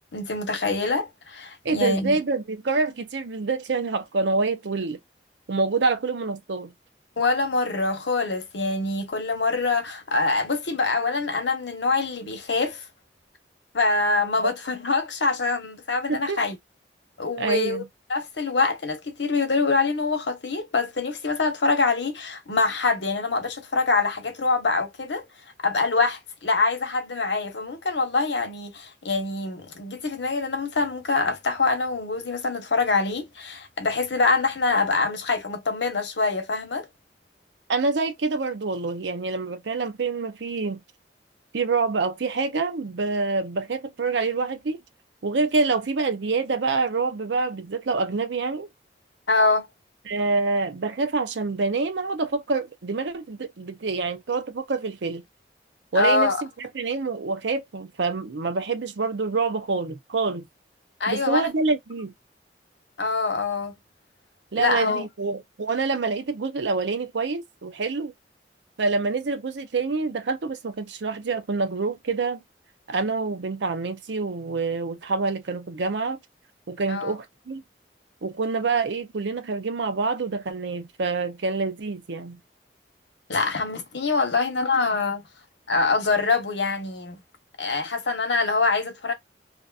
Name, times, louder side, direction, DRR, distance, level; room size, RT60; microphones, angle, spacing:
voice 1, 0.1-2.1 7.2-12.8 13.7-16.6 17.2-17.8 18.1-25.2 25.6-36.9 49.3-49.7 55.9-56.4 61.0-61.5 63.0-63.7 64.6-65.1 76.9-77.1 83.3-85.2 85.7-87.2 87.6-89.1, left 3 dB, 85° left, 0.9 m, -24 dB
voice 2, 1.6-5.0 5.5-6.7 16.1-16.4 17.4-17.8 37.7-40.8 41.5-44.8 45.2-48.7 50.1-55.2 55.9-60.5 61.1-62.1 64.5-68.1 68.8-72.4 72.9-76.2 76.7-77.6 78.2-82.4, right 4 dB, 85° right, 0.6 m, -26 dB
2.8 x 2.5 x 2.3 m
head